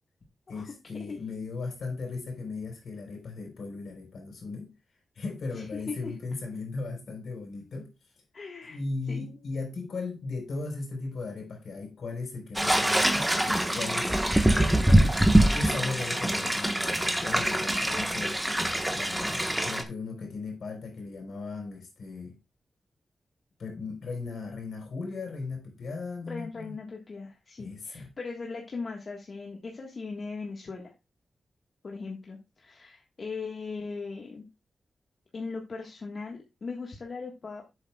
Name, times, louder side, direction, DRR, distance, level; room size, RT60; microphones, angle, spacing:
voice 1, 0.5-4.7 5.2-7.9 8.6-14.2 14.4-15.2 15.5-18.4 18.9-22.4 23.6-26.7 27.6-28.1, left 3 dB, 80° left, 3.9 m, -37 dB
voice 2, 5.5-6.1 8.3-8.8 9.1-9.3 26.3-30.9 31.8-34.4 35.3-37.6, left 4 dB, 50° left, 1.6 m, -39 dB
sound 1, 12.5-19.8, right 1 dB, 10° right, 1.3 m, -24 dB
10.0 x 7.9 x 2.4 m
wide cardioid pair, 95°, 0 cm